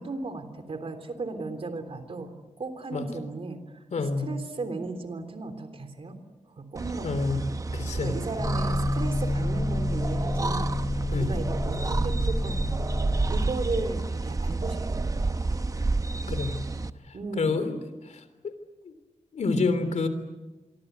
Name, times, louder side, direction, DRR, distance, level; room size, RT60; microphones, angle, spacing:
voice 1, 0.0-3.8 4.2-6.2 6.6-10.8 11.1-12.8 13.3-15.6 17.1-17.6, right 3 dB, 50° right, 8 dB, 3.4 m, -36 dB
voice 2, 3.9-4.3 7.0-7.5 7.7-8.2 11.1-11.4 16.3-16.6 17.1-17.7 18.0-18.5 18.8-18.9 19.3-20.1, left 4 dB, 75° left, 10 dB, 3.3 m, -28 dB
sound 1, 6.8-16.9, right 3 dB, 30° right, 0.8 m, -30 dB
sound 2, 8.4-13.5, left 1 dB, 25° left, 5.8 m, -30 dB
27.0 x 23.5 x 8.2 m, 1.2 s
wide cardioid pair, 150°, 12 cm